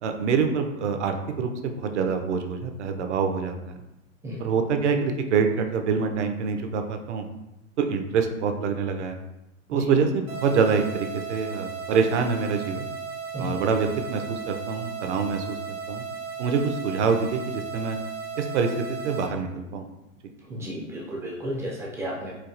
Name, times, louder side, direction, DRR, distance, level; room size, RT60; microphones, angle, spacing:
voice 1, 0.0-3.8 4.4-7.3 7.8-9.2 9.7-12.9 13.4-16.0 16.4-18.0 18.4-19.9, right 5 dB, 60° right, 6 dB, 0.6 m, -25 dB
sound 1, 10.3-19.3, right 5 dB, 80° right, 1.0 m, -36 dB
voice 2, 20.4-22.3, equal, 5° right, -4 dB, 0.3 m, -33 dB
4.5 x 2.4 x 2.4 m, 0.93 s
figure-of-eight pair, 95°, 41 cm